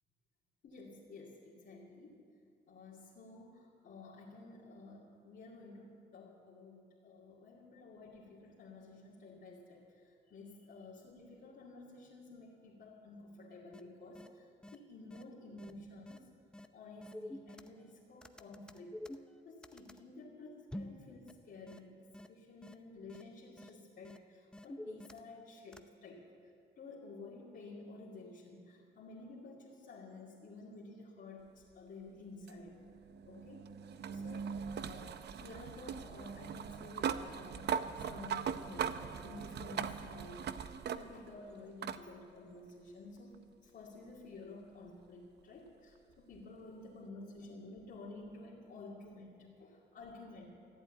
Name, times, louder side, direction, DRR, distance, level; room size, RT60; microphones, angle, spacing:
voice 1, 0.6-2.2 2.7-9.8 10.3-16.2 16.7-18.9 19.4-22.0 22.3-26.3 26.8-32.8 33.2-33.7 34.1-40.6 40.9-50.5, left 2 dB, 60° left, -7 dB, 2.5 m, -52 dB
sound 1, 13.7-13.8 14.1-14.3 14.6-14.8 15.1-15.2 15.6-15.7 16.1-16.2 16.5-16.7 17.0-17.9 18.2-20.0 20.7-21.0 21.3-21.4 21.7-21.8 22.1-22.3 22.6-22.7 23.1-23.2 23.6-23.7 24.0-24.2 24.5-25.4 25.7-25.8, left 1 dB, 5° left, 0.7 m, -47 dB
sound 2, 32.5-41.3 41.8-42.0 43.3-43.4 46.3-46.4, right 7 dB, 60° right, 0.7 m, -40 dB
15.0 x 8.1 x 9.1 m, 2.4 s
cardioid pair, 90°, 20 cm